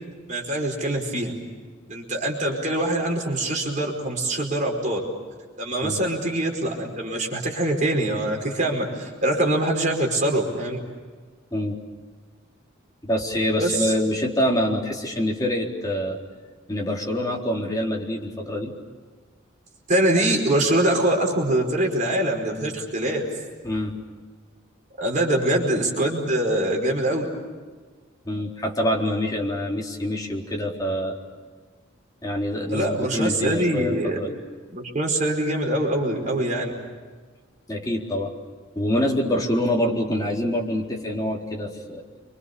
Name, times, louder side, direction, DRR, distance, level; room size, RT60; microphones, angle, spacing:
voice 1, 0.3-1.3 1.9-5.0 5.6-10.8 13.6-13.9 19.9-23.3 25.0-27.3 32.7-34.2 34.7-36.7, right 1 dB, 40° right, 1 dB, 5.1 m, -24 dB
voice 2, 13.0-16.2 16.7-18.7 23.6-24.0 28.3-31.2 32.2-34.4 37.7-38.3 38.8-42.0, left 1 dB, 20° left, -1 dB, 4.1 m, -25 dB
29.5 x 25.0 x 6.9 m, 1.5 s
head